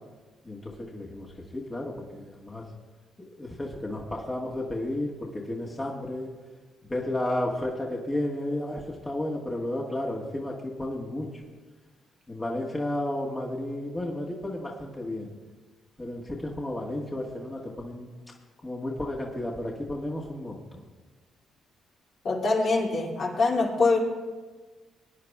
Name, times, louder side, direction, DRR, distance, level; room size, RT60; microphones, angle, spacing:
voice 1, 0.4-2.7 3.2-6.3 6.8-11.3 12.3-15.3 16.0-18.1 18.6-20.8, left 1 dB, 20° left, -2 dB, 1.6 m, -32 dB
voice 2, 22.2-24.0, left 3 dB, 60° left, -3 dB, 2.6 m, -24 dB
21.0 x 9.6 x 2.4 m, 1.3 s
supercardioid pair, 70°, 0 cm